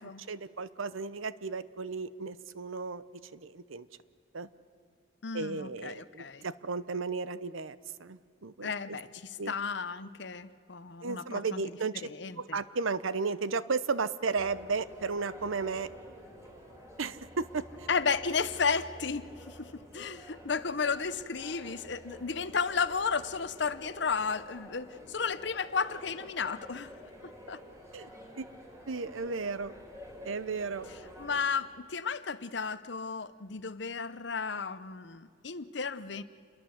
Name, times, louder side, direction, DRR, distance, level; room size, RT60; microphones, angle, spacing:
voice 1, 0.3-3.0 3.3-3.9 4.3-4.5 5.3-9.0 9.4-9.5 11.0-12.1 12.4-15.9 17.0-17.9 27.9-28.1 28.4-28.5 28.9-29.7 30.2-30.9, right 4 dB, 80° right, 0.9 m, -34 dB
voice 2, 5.2-6.4 8.6-11.6 12.0-12.6 17.9-26.9 27.2-27.6 31.2-36.2, left 5 dB, 60° left, 0.8 m, -33 dB
sound 1, 14.3-31.4, equal, 15° right, 3.9 m, -50 dB
28.0 x 22.0 x 8.0 m
head